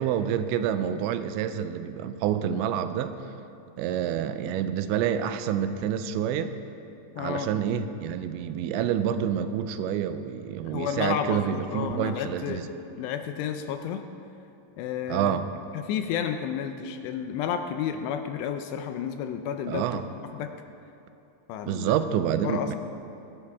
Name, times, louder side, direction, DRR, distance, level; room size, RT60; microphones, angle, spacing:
voice 1, 0.0-3.1 3.8-6.5 7.2-12.7 15.1-15.5 19.7-20.0 21.7-22.8, right 9 dB, 85° right, 10 dB, 2.9 m, -28 dB
voice 2, 7.2-7.5 10.7-12.6 13.0-14.0 14.8-15.4 15.7-19.8 20.3-20.5 21.5-21.9 22.4-22.8, left 8 dB, 80° left, 7 dB, 2.6 m, -31 dB
22.0 x 11.0 x 3.5 m, 2.8 s
omnidirectional pair, 5.2 m